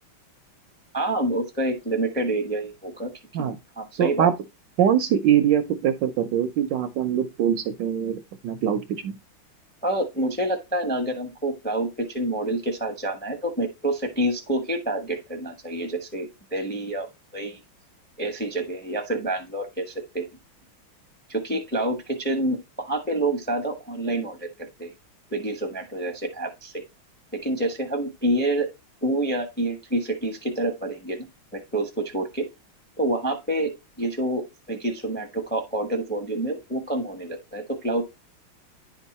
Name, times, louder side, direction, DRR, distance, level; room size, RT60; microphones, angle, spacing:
voice 1, 0.9-3.1 3.4-4.3 9.8-17.1 17.3-17.6 18.2-20.3 21.3-24.5 24.8-24.9 25.3-26.8 27.4-28.7 29.0-31.3 31.5-32.5 33.0-33.7 34.0-38.0, right 1 dB, 10° left, 0.7 m, -27 dB
voice 2, 4.0-4.3 4.8-9.2, right 9 dB, 70° right, 1.1 m, -23 dB
10.0 x 3.7 x 4.1 m
omnidirectional pair, 2.3 m